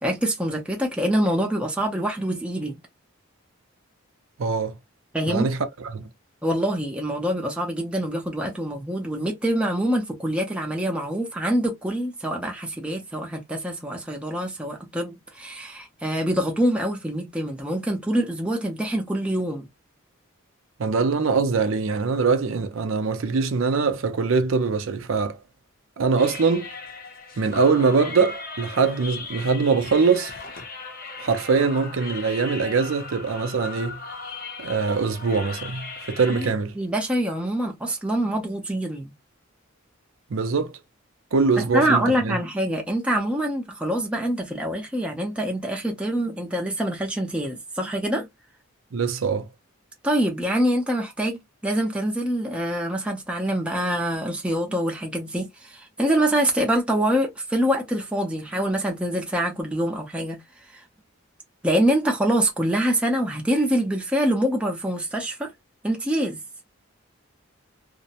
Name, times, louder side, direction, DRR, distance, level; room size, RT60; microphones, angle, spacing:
voice 1, 0.0-2.7 5.1-5.5 6.4-19.7 36.3-39.1 41.6-48.3 50.0-60.4 60.7-60.8 61.6-65.5 65.8-66.4, right 1 dB, 5° right, 0.5 m, -25 dB
voice 2, 4.4-4.8 5.3-6.1 20.8-25.4 26.0-26.7 27.4-30.3 31.2-34.0 34.6-36.7 40.3-40.8 41.3-42.4 48.9-49.5, right 4 dB, 70° right, 0.5 m, -23 dB
sound 1, 26.2-36.5, left 3 dB, 45° left, 0.6 m, -38 dB
2.6 x 2.1 x 2.7 m
head